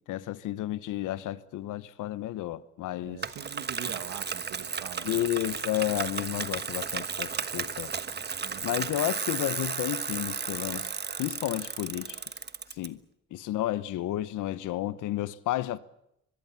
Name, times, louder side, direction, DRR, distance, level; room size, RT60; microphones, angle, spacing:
voice 1, 0.0-3.2 5.0-7.9 8.6-10.9 11.2-12.2 12.8-13.0 13.3-15.8, left 14 dB, 85° left, 1.0 m, -32 dB
voice 2, 3.0-5.3 8.4-9.1, right 11 dB, 80° right, 1.6 m, -44 dB
Bicycle, 3.2-12.9, right 6 dB, 35° right, 1.3 m, -34 dB
24.5 x 22.0 x 7.2 m
cardioid pair, 90°, 30 cm